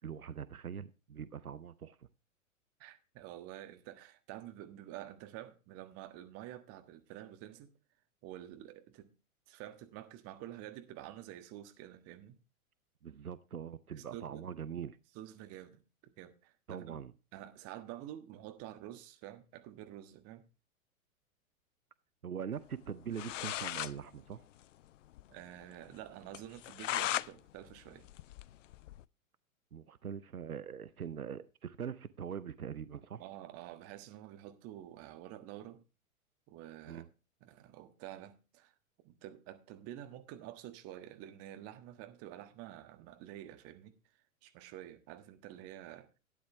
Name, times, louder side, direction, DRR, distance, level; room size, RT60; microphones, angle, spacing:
voice 1, 0.0-2.0 13.0-15.0 16.7-17.1 22.2-24.4 29.7-33.3 36.9-37.1, right 8 dB, 90° right, 0.6 m, -42 dB
voice 2, 2.8-7.7 8.2-9.1 9.5-12.4 13.9-14.5 15.1-17.0 17.3-20.4 25.3-28.1 33.2-35.8 36.5-37.0 37.4-38.7 39.0-44.0 44.4-46.2, right 13 dB, 35° right, 1.5 m, -49 dB
sound 1, 22.9-23.0 23.1-23.9 24.3-24.4 24.6-24.7 25.1-25.2 25.6-25.7 26.3-27.3 27.7-29.0, left 13 dB, 60° left, 0.5 m, -37 dB
12.5 x 9.5 x 3.2 m
figure-of-eight pair, 100°, 42 cm